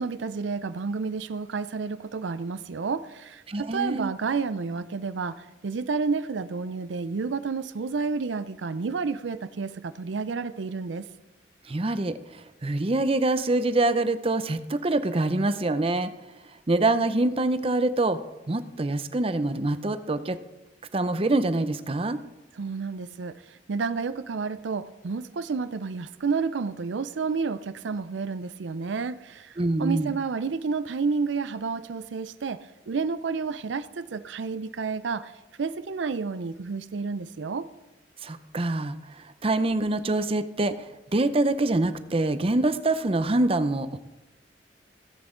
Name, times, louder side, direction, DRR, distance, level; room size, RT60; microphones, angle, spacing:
voice 1, 0.0-11.1 22.5-35.3 35.6-37.7, right 4 dB, 85° right, 14 dB, 0.5 m, -30 dB
voice 2, 3.5-4.1 11.7-16.1 16.7-18.2 18.5-20.4 20.9-22.2 29.6-30.1 38.2-40.8 41.1-44.0, right 2 dB, 30° right, 12 dB, 0.6 m, -25 dB
17.0 x 8.3 x 3.8 m, 1.0 s
head